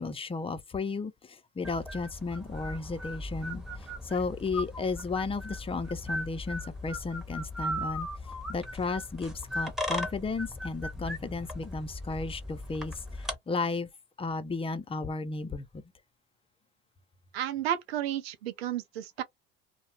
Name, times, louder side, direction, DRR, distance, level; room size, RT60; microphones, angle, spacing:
voice 1, 0.0-13.9 14.2-15.9, left 4 dB, 20° left, 0.6 m, -34 dB
sound 1, 1.6-13.4, left 1 dB, ahead, 1.0 m, -38 dB
voice 2, 17.3-19.2, right 11 dB, 90° right, 0.6 m, -32 dB
2.3 x 2.1 x 2.9 m
hypercardioid pair, 70°, 30 cm